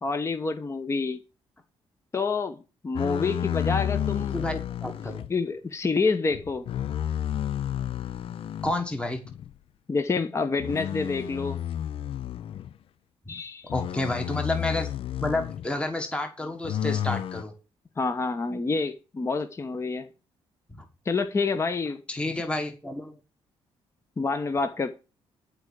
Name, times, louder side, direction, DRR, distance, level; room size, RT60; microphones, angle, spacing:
voice 1, 0.0-1.2 2.1-4.4 5.3-6.7 9.9-11.6 13.3-13.7 18.0-20.1 21.0-22.0 24.2-25.0, left 4 dB, 25° left, 1.1 m, -28 dB
sound 1, 2.9-5.3 6.3-8.8 9.2-9.5 10.6-12.7 13.7-15.7 16.6-17.4, left 10 dB, 60° left, 0.5 m, -31 dB
voice 2, 4.3-5.2 8.6-9.2 13.3-13.4 13.7-14.9 15.2-17.5 20.7-20.8 22.1-23.2, left 2 dB, 10° left, 1.4 m, -30 dB
11.0 x 4.8 x 8.1 m
cardioid pair, 115°, 11 cm